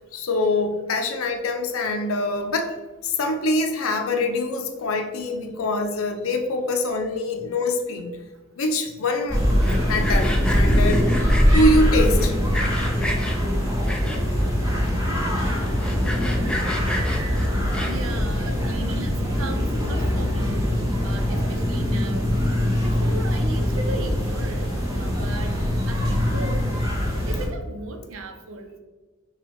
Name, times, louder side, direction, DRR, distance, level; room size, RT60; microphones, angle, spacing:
voice 1, 0.0-2.8 3.0-8.1 8.6-9.4 9.8-11.1 11.5-12.4, left 2 dB, 85° left, 4 dB, 0.5 m, -24 dB
sound 1, 9.3-27.5, equal, 15° right, 1.0 m, -22 dB
Sawing, 9.5-11.7 12.2-13.4 13.8-14.4 14.9-15.0 15.2-15.3 15.7-18.2, equal, 5° left, 0.4 m, -31 dB
voice 2, 17.8-20.7 21.0-22.3 22.8-24.7 25.0-25.5 25.9-26.7 27.3-28.8, right 2 dB, 75° right, 6 dB, 0.6 m, -36 dB
6.0 x 2.3 x 3.4 m, 1.3 s
head